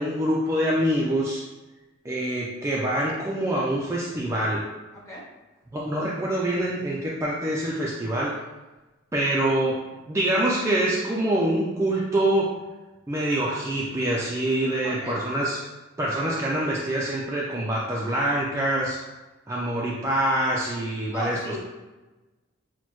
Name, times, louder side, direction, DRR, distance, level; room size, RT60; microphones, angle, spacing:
voice 1, 0.0-1.4 2.0-4.6 5.7-8.3 9.1-9.8 10.1-12.5 13.1-15.6 16.0-19.0 19.5-21.4, right 1 dB, 15° right, -5 dB, 0.3 m, -25 dB
voice 2, 14.8-15.2 21.1-21.6, right 1 dB, 15° left, -6 dB, 0.9 m, -34 dB
6.0 x 2.1 x 2.9 m, 1.2 s
head